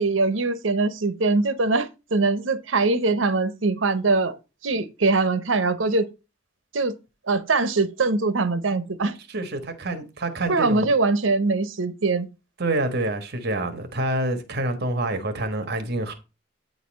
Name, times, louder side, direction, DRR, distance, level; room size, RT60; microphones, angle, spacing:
voice 1, 0.0-4.3 4.6-6.1 6.7-6.9 7.3-9.1 10.5-12.3, right 3 dB, 85° right, 0.8 m, -22 dB
voice 2, 9.3-10.9 12.6-16.1, right 2 dB, 55° right, 1.4 m, -27 dB
9.1 x 4.1 x 5.2 m
head